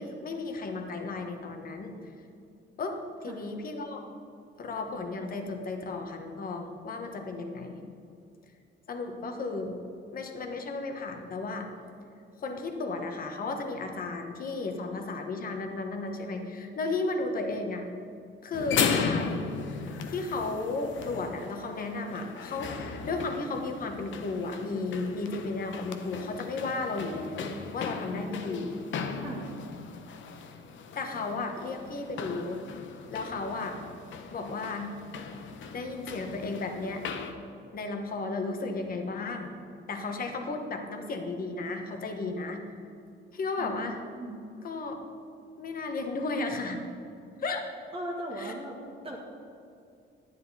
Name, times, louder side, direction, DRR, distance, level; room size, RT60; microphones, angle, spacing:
voice 1, 0.0-1.9 2.8-4.0 4.6-7.8 8.9-9.8 10.1-11.7 12.4-17.9 18.4-19.5 20.1-28.8 30.9-32.6 33.1-33.8 34.3-34.9 35.7-37.0 37.7-39.5 39.9-42.9 43.3-44.0 44.6-45.0 45.6-46.8 47.4-47.7 48.4-48.5, left 3 dB, 45° left, 4 dB, 1.3 m, -34 dB
sound 1, 18.5-37.3, left 6 dB, 65° left, 0.9 m, -37 dB
voice 2, 29.2-29.5 43.6-43.7 44.2-44.4 47.9-48.8 49.0-49.2, right 1 dB, 25° right, -3 dB, 1.7 m, -37 dB
11.5 x 10.5 x 4.1 m, 2.4 s
cardioid pair, 150°, 21 cm